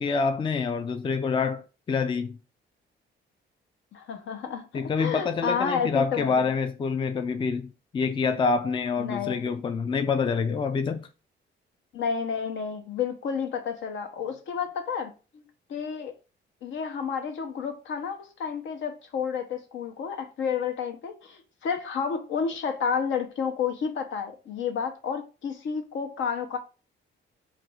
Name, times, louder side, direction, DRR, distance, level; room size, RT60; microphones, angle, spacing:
voice 1, 0.0-2.4 4.7-11.1, left 5 dB, 25° left, 0.4 m, -27 dB
voice 2, 3.9-6.3 9.0-9.4 11.9-15.4 15.7-16.1 16.6-26.6, left 6 dB, 75° left, 0.8 m, -30 dB
3.1 x 2.6 x 4.4 m
cardioid pair, 90°, 20 cm